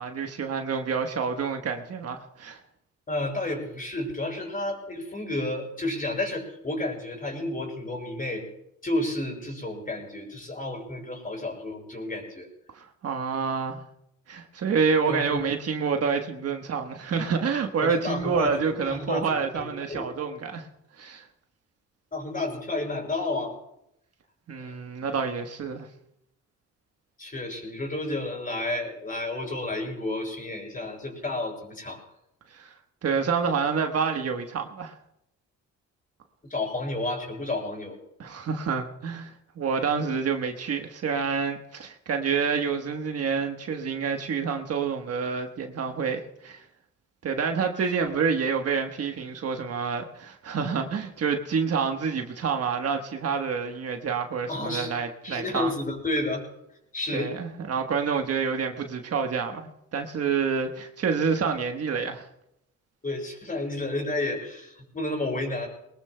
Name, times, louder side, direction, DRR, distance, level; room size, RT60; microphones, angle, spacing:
voice 1, 0.0-2.6 12.7-13.8 14.3-20.7 21.0-21.2 24.5-25.9 32.5-32.7 33.0-35.0 38.2-46.6 47.2-55.7 57.1-62.3, right 5 dB, 55° right, 4 dB, 1.3 m, -28 dB
voice 2, 3.1-8.4 8.8-12.5 15.1-15.4 17.8-20.1 22.1-23.6 24.6-24.8 27.2-32.0 36.5-38.0 48.0-48.1 54.5-54.9 55.2-56.4 56.9-57.3 63.0-65.7, left 2 dB, 25° left, 0 dB, 6.3 m, -31 dB
22.0 x 20.0 x 2.3 m, 0.81 s
cardioid pair, 90°, 30 cm